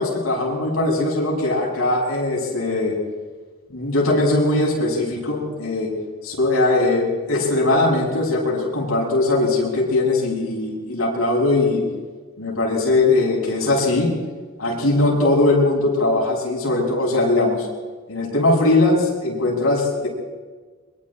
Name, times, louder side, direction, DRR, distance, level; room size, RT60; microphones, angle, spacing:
voice 1, 0.0-3.0 3.7-5.9 6.2-11.8 12.4-14.1 14.6-17.7 18.1-20.1, left 2 dB, 85° left, -2 dB, 7.7 m, -20 dB
25.5 x 23.5 x 4.5 m, 1.4 s
head